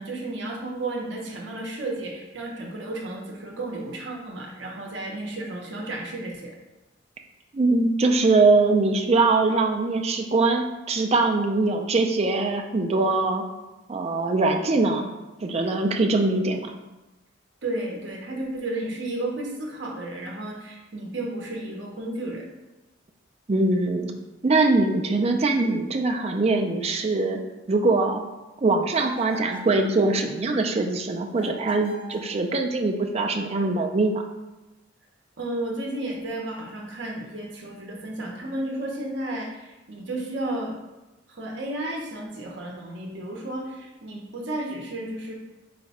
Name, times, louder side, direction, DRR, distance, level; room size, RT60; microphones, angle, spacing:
voice 1, 0.0-6.5 17.6-22.5 35.4-40.8 41.3-45.3, right 1 dB, 65° right, -1 dB, 0.7 m, -33 dB
voice 2, 7.5-13.4 13.9-15.1 15.4-16.7 23.5-24.1 24.4-27.4 27.7-28.2 28.6-34.2, right 3 dB, 30° right, 3 dB, 0.4 m, -22 dB
sound 1, 28.9-29.8 31.4-32.3, left 1 dB, 85° left, 0.9 m, -41 dB
4.8 x 2.2 x 4.0 m, 1.1 s
head